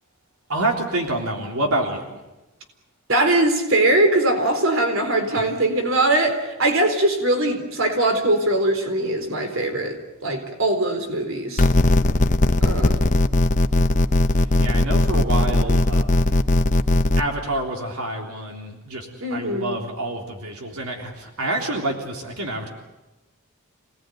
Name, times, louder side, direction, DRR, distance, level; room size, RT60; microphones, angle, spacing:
voice 1, 0.5-2.2 5.5-5.6 14.4-16.4 17.2-22.7, right 1 dB, 85° right, 1 dB, 3.6 m, -27 dB
voice 2, 3.1-11.7 12.6-13.1 19.2-19.8, right 1 dB, 60° right, 5 dB, 4.0 m, -21 dB
sound 1, 11.6-17.2, left 1 dB, 35° left, 0.8 m, -18 dB
27.5 x 19.0 x 9.3 m, 1.0 s
head